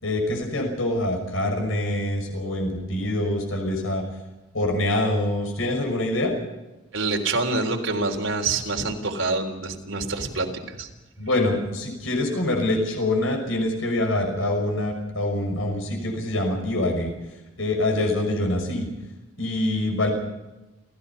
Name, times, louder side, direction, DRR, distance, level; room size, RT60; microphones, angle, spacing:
voice 1, 0.0-4.0 4.5-6.3 11.2-17.1 17.6-18.9 19.4-20.1, left 1 dB, 85° left, 3 dB, 6.0 m, -25 dB
voice 2, 6.9-10.9, right 3 dB, 75° right, 3 dB, 3.7 m, -26 dB
29.5 x 15.5 x 5.7 m, 1.1 s
head